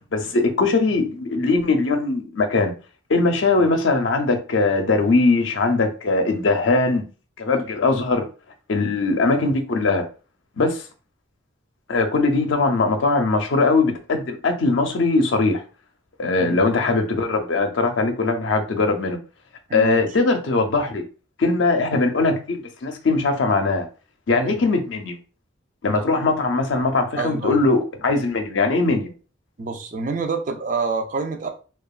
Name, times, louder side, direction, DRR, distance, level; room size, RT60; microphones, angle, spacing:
voice 1, 0.1-2.7 3.1-7.0 7.4-8.3 8.7-10.0 10.6-10.8 11.9-15.6 16.2-19.2 19.7-21.0 21.4-23.9 24.3-25.2 25.8-29.1, left 3 dB, 75° left, 0.5 m, -20 dB
voice 2, 19.7-20.0 24.4-24.6 27.2-27.6 29.6-31.5, right 4 dB, 40° right, 0.4 m, -27 dB
2.9 x 2.3 x 2.3 m
head